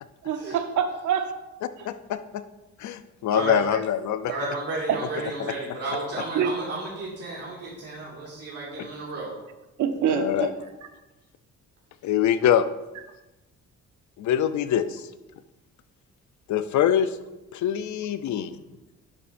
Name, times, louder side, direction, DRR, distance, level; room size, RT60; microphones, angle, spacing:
voice 1, 0.2-1.3 4.3-4.4 4.9-5.0 6.3-6.5 9.8-10.5, right 8 dB, 75° right, 7 dB, 0.9 m, -25 dB
voice 2, 1.8-2.4 2.8-4.3 5.4-5.5 10.1-10.5 12.0-12.7 14.2-15.1 16.5-17.2 17.5-18.6, left 9 dB, 70° left, 12 dB, 0.6 m, -24 dB
voice 3, 4.3-9.4, right 3 dB, 55° right, -4 dB, 2.2 m, -33 dB
10.5 x 7.0 x 2.6 m, 1.0 s
cardioid pair, 90°, 30 cm